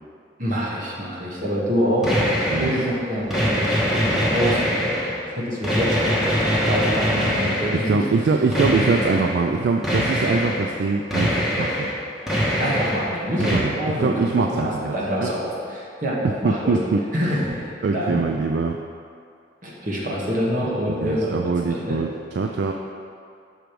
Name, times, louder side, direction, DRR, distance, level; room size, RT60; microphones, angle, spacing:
voice 1, 0.4-3.6 3.9-4.6 5.3-8.0 12.5-16.8 17.1-18.2 19.6-22.0, equal, 45° right, -5 dB, 1.4 m, -26 dB
sound 1, 2.0-2.9 3.3-5.2 5.6-8.0 8.5-9.4 9.8-10.7 11.1-12.0 12.3-13.1 13.4-13.6, equal, ahead, 1.0 m, -23 dB
voice 2, 7.7-11.9 13.4-13.7 14.0-15.0 15.2-15.3 16.4-17.0 17.8-18.8 20.9-22.7, right 4 dB, 60° right, 3 dB, 0.3 m, -23 dB
6.4 x 4.5 x 5.1 m, 2.4 s
head